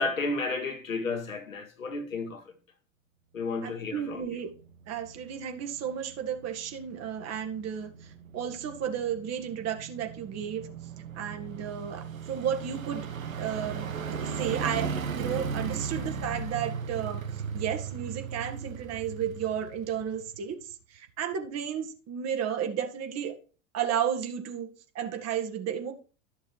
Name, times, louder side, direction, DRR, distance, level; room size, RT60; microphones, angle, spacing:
voice 1, 0.0-2.4 3.3-4.4, left 3 dB, 80° left, 2.0 m, -32 dB
voice 2, 3.6-4.5 4.9-7.9 8.3-10.7 11.2-13.1 13.4-17.2 17.5-20.6 21.0-23.4 23.7-24.7 25.0-25.9, right 8 dB, 40° right, 2.1 m, -33 dB
sound 1, 4.2-20.7 21.1-21.2, right 6 dB, 80° right, 1.4 m, -37 dB
13.0 x 6.6 x 3.2 m
figure-of-eight pair, 80°, 40 cm